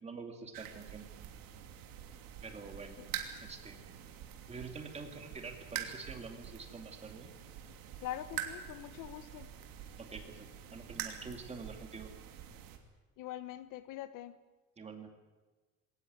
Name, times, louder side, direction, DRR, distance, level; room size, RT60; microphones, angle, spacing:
voice 1, 0.0-1.1 2.4-3.0 3.3-4.0 4.5-7.3 10.0-12.1 14.8-15.1, right 4 dB, 20° right, 2.5 m, -47 dB
sound 1, 0.5-12.8, right 10 dB, 85° right, 2.9 m, -46 dB
voice 2, 8.0-9.5 13.2-14.4, left 12 dB, 65° left, 1.2 m, -43 dB
22.0 x 18.5 x 9.5 m
cardioid pair, 175°, 33 cm